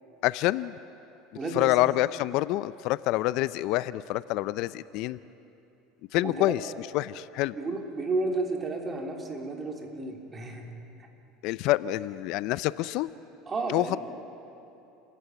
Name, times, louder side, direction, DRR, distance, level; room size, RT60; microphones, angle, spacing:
voice 1, 0.2-0.8 1.5-5.2 6.1-7.5 11.4-13.1 13.7-14.0, left 17 dB, 65° left, 17 dB, 0.5 m, -27 dB
voice 2, 1.3-1.8 6.2-6.5 7.5-10.7 13.4-14.0, right 3 dB, 25° right, 2 dB, 3.2 m, -32 dB
30.0 x 14.0 x 9.3 m, 2.9 s
supercardioid pair, 115°, 0 cm